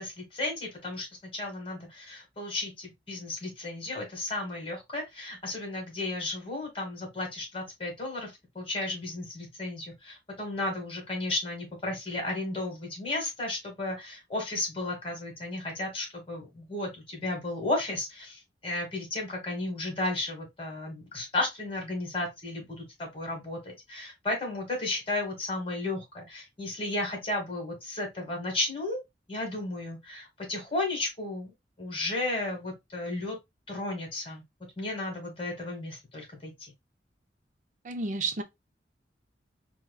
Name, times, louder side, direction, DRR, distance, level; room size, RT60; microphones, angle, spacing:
voice 1, 0.0-29.0 29.3-31.5 31.8-33.4 33.7-34.4 34.8-36.5, left 2 dB, 30° left, 1.5 m, -34 dB
voice 2, 37.8-38.4, right 3 dB, 45° right, 0.5 m, -31 dB
4.5 x 2.3 x 2.3 m
head